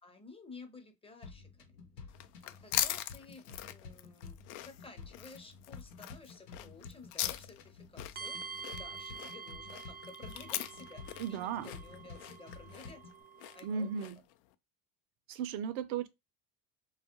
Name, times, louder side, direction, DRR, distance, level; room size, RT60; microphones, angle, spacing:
voice 1, 0.0-1.7 2.0-13.0 13.5-14.1, left 3 dB, 10° left, 0.7 m, -54 dB
sound 1, 1.2-13.2, left 5 dB, 85° left, 0.9 m, -51 dB
sound 2, 2.1-14.3, left 14 dB, 65° left, 0.5 m, -41 dB
sound 3, 8.1-14.1, right 4 dB, 20° right, 0.4 m, -47 dB
voice 2, 11.2-11.7 13.6-14.2 15.3-16.1, right 7 dB, 60° right, 0.6 m, -35 dB
2.4 x 2.1 x 2.9 m
hypercardioid pair, 75°, 48 cm